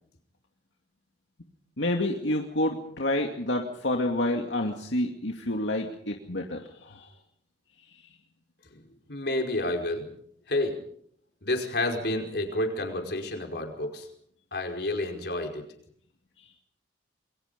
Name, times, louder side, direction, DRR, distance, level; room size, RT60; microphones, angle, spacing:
voice 1, 1.8-7.1, left 1 dB, 85° left, 2 dB, 2.4 m, -28 dB
voice 2, 8.7-10.1 10.5-10.8 11.4-14.1 14.5-15.6, left 1 dB, 60° left, 3 dB, 5.0 m, -30 dB
28.5 x 22.5 x 5.3 m, 0.66 s
head